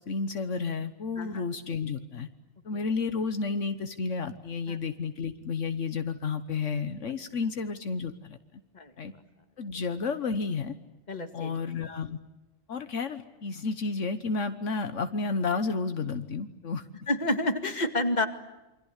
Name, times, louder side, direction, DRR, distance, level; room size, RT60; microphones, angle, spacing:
voice 1, 0.0-2.3 2.6-8.4 9.0-9.1 9.6-10.7 11.3-12.2 12.7-16.8, left 4 dB, 75° left, 9 dB, 1.5 m, -31 dB
voice 2, 11.1-11.6 17.1-18.3, left 1 dB, 35° left, 7 dB, 2.2 m, -29 dB
28.5 x 25.0 x 8.3 m, 1.0 s
omnidirectional pair, 1.3 m